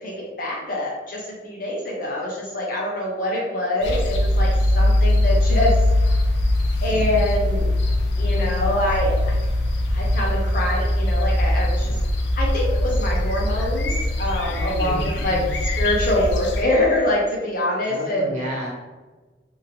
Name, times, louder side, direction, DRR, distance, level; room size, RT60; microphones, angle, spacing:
voice 1, 0.0-5.8 6.8-7.7 8.2-9.3 9.9-12.0 12.3-15.4 15.8-18.3, left 1 dB, 50° left, -3 dB, 0.8 m, -25 dB
sound 1, 3.8-16.6, left 1 dB, 70° left, 0.4 m, -21 dB
voice 2, 14.6-15.5 17.8-18.7, equal, 40° right, -5 dB, 0.9 m, -31 dB
2.8 x 2.8 x 2.7 m, 1.3 s
head